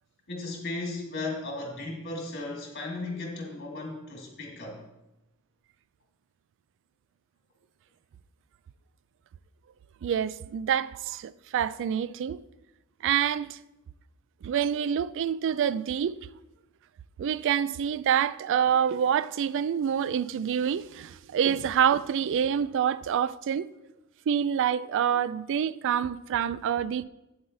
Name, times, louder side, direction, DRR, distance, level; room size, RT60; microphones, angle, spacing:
voice 1, 0.3-4.8, left 2 dB, 50° left, 2.4 m, -36 dB
voice 2, 10.0-12.4 13.0-13.6 14.4-16.3 17.2-23.7 24.3-27.0, right 8 dB, 60° right, 0.3 m, -27 dB
8.8 x 7.7 x 4.0 m
head